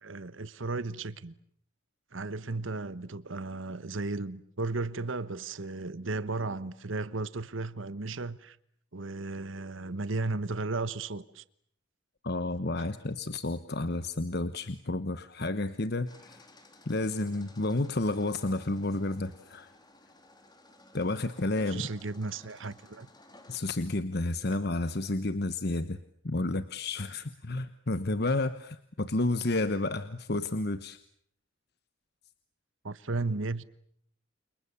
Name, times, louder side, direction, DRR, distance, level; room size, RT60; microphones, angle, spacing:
voice 1, 0.0-1.3 2.1-8.6 8.9-11.4 21.7-23.1 32.8-33.6, right 3 dB, 70° right, 1.2 m, -35 dB
voice 2, 12.2-16.4 16.9-19.7 20.9-21.9 23.5-26.0 26.2-31.0, left 2 dB, 50° left, 1.1 m, -31 dB
sound 1, 16.1-23.6, left 2 dB, 20° left, 3.5 m, -57 dB
29.5 x 28.5 x 7.1 m
head